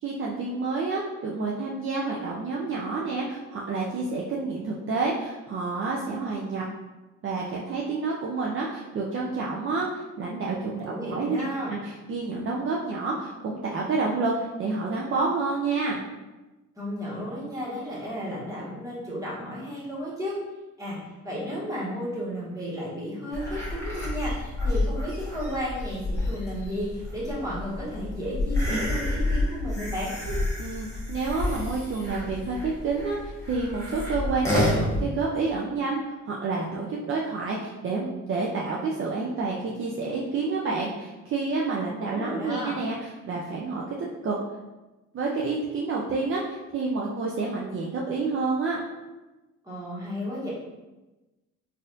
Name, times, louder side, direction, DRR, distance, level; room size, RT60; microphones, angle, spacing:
voice 1, 0.0-6.6 7.2-11.4 11.7-16.0 30.6-44.0 44.2-44.4 45.1-48.8, right 3 dB, 45° right, -3 dB, 0.5 m, -29 dB
voice 2, 10.9-11.7 16.7-20.3 20.8-21.0 21.2-30.1 42.0-42.7 49.6-50.5, equal, 10° right, -7 dB, 1.5 m, -33 dB
sound 1, 23.3-35.0, left 1 dB, 10° left, 1.1 m, -29 dB
4.0 x 2.6 x 2.6 m, 1.1 s
cardioid pair, 90°, 30 cm